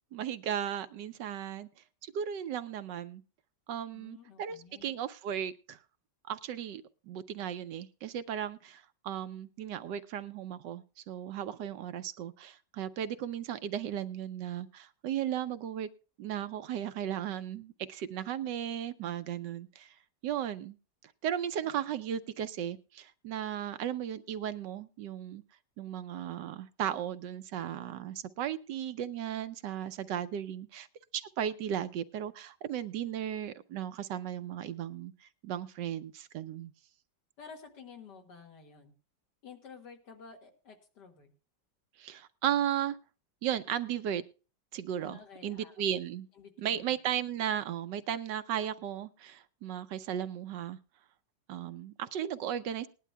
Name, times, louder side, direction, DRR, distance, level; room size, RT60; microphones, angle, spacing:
voice 1, 0.1-1.7 2.0-3.2 3.7-5.8 6.3-15.9 16.2-19.9 20.2-20.8 21.0-25.4 25.8-30.9 31.1-36.7 42.0-43.0 43.4-44.2 44.7-46.3 46.6-50.8 51.5-52.9, right 10 dB, 75° right, 11 dB, 1.3 m, -36 dB
voice 2, 3.9-4.9 37.4-38.9 39.4-41.3 45.0-45.8 46.4-46.8, left 5 dB, 65° left, 3 dB, 2.4 m, -51 dB
19.5 x 11.0 x 2.2 m, 0.36 s
omnidirectional pair, 2.0 m